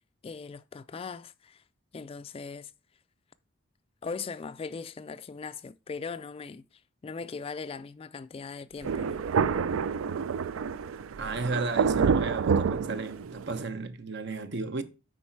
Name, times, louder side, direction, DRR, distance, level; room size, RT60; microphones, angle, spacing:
voice 1, 0.2-1.6 1.9-2.7 4.0-6.6 7.0-9.3, left 5 dB, 30° left, 0.3 m, -39 dB
Thunder, 8.8-13.6, right 6 dB, 80° right, 0.4 m, -28 dB
voice 2, 11.2-14.8, right 3 dB, 60° right, 0.8 m, -33 dB
9.7 x 4.0 x 4.5 m
head